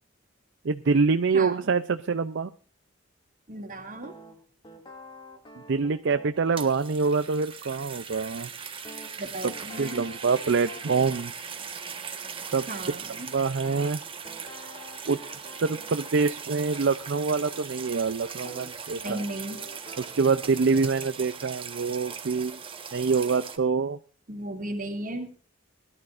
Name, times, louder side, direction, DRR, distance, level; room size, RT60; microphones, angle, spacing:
voice 1, 0.6-2.5 5.7-8.5 9.4-9.5 9.8-11.3 12.5-12.6 13.3-14.0 15.1-15.2 15.6-19.2 20.0-22.6 22.9-24.0, right 4 dB, 60° right, 10 dB, 0.5 m, -25 dB
voice 2, 1.3-1.7 3.5-4.1 9.2-10.1 12.7-13.3 18.9-19.6 24.3-25.3, right 1 dB, 40° right, 3 dB, 2.4 m, -35 dB
sound 1, 4.0-6.4 8.9-11.2 13.6-16.0 18.5-18.7 19.1-20.5, equal, 25° left, 2.4 m, -46 dB
sound 2, 6.3-23.6, right 6 dB, 25° right, 1.3 m, -39 dB
21.0 x 12.0 x 2.5 m, 0.42 s
head